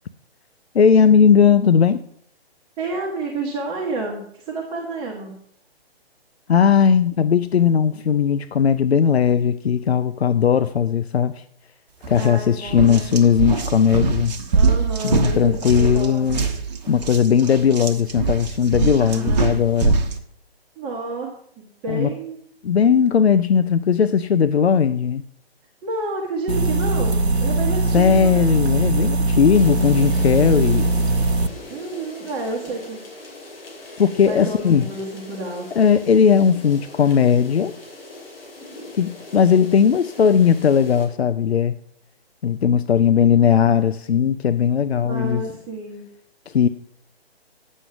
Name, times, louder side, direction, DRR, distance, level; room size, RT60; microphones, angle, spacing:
voice 1, 0.7-2.0 6.5-11.4 12.1-14.3 15.0-16.5 16.9-20.0 21.9-22.1 22.6-25.2 27.9-30.9 34.0-34.9 35.8-37.8 38.9-41.7 42.4-45.4 46.5-46.7, left 7 dB, 80° left, 0.5 m, -17 dB
voice 2, 2.8-5.4 12.2-13.1 14.5-16.5 19.0-19.6 20.8-22.4 25.8-28.5 31.7-33.0 34.2-35.7 45.1-46.0, right 3 dB, 15° right, 1.1 m, -30 dB
sound 1, 12.0-12.3 12.7-20.2, right 4 dB, 40° right, 1.0 m, -23 dB
sound 2, 26.5-31.5, right 2 dB, 90° right, 0.8 m, -20 dB
sound 3, 29.5-41.1, left 2 dB, 60° left, 3.0 m, -41 dB
9.1 x 6.4 x 5.9 m
figure-of-eight pair, 135°, 31 cm